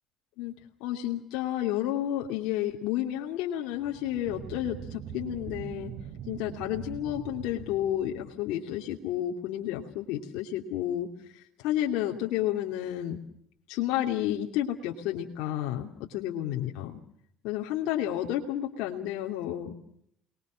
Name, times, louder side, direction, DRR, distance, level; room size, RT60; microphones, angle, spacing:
voice 1, 0.8-5.9 6.3-13.2 13.7-17.0 17.4-19.8, left 12 dB, 80° left, 0 dB, 2.7 m, -31 dB
sound 1, 3.7-8.7, right 9 dB, 70° right, 3.4 m, -42 dB
29.5 x 21.5 x 6.4 m, 0.70 s
supercardioid pair, 75°, 0 cm